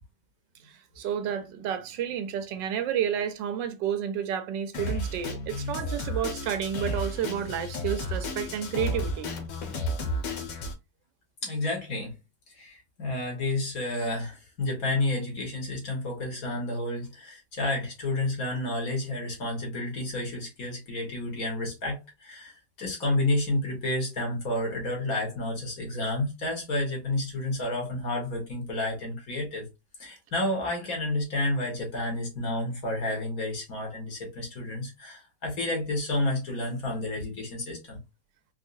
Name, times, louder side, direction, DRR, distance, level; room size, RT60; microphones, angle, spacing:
voice 1, 0.6-9.3, right 9 dB, 85° right, 1.4 m, -31 dB
Drum kit, 4.7-10.7, left 1 dB, 75° left, 1.5 m, -32 dB
voice 2, 11.4-12.1 12.5-29.7 30.0-38.0, left 2 dB, 55° left, 1.9 m, -30 dB
4.5 x 2.3 x 2.6 m
omnidirectional pair, 1.9 m